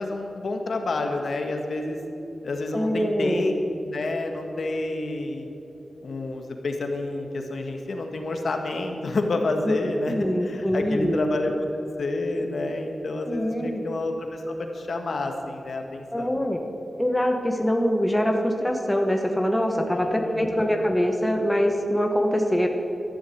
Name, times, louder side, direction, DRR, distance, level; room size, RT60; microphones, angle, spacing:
voice 1, 0.0-2.0 2.4-3.5 3.8-5.5 6.0-16.3 19.9-20.6, left 2 dB, 60° left, 4 dB, 1.6 m, -29 dB
voice 2, 2.7-3.4 9.7-9.8 10.1-11.2 13.3-13.8 16.1-16.6 17.0-22.7, equal, 5° left, 3 dB, 1.2 m, -24 dB
13.0 x 11.5 x 8.5 m, 2.9 s
wide cardioid pair, 165°, 0 cm